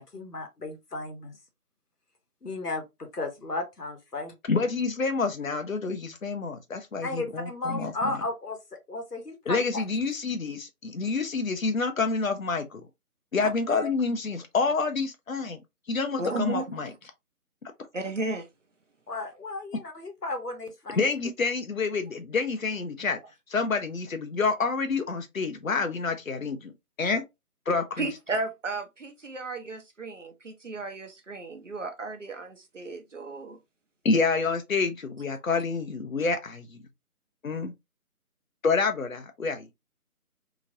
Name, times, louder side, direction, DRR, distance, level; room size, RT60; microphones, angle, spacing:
voice 1, 0.0-1.4 2.4-4.3 7.0-8.6 8.9-9.8 13.7-13.9 19.1-21.1, left 2 dB, 85° left, 1.1 m, -34 dB
voice 2, 4.5-8.2 9.5-12.8 13.3-15.6 15.9-16.9 21.0-23.2 23.5-26.7 27.0-27.2 27.7-28.1 34.0-36.8 37.4-37.7 38.6-39.7, left 4 dB, 60° left, 0.7 m, -28 dB
voice 3, 16.2-17.0 17.9-18.5 28.0-33.6, right 3 dB, 55° right, 0.8 m, -34 dB
2.9 x 2.5 x 2.6 m
figure-of-eight pair, 160°, 45 cm